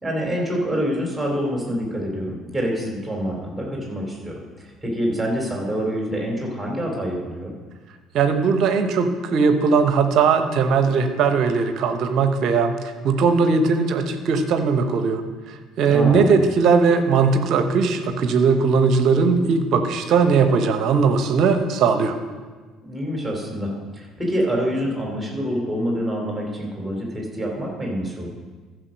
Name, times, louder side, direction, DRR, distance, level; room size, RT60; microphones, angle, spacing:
voice 1, 0.0-7.5 15.8-16.3 22.8-28.3, equal, 5° right, -1 dB, 3.3 m, -26 dB
voice 2, 8.1-12.7 13.0-15.2 15.8-22.2, right 5 dB, 50° right, 8 dB, 0.9 m, -19 dB
14.0 x 5.1 x 6.3 m, 1.4 s
figure-of-eight pair, 55°, 0 cm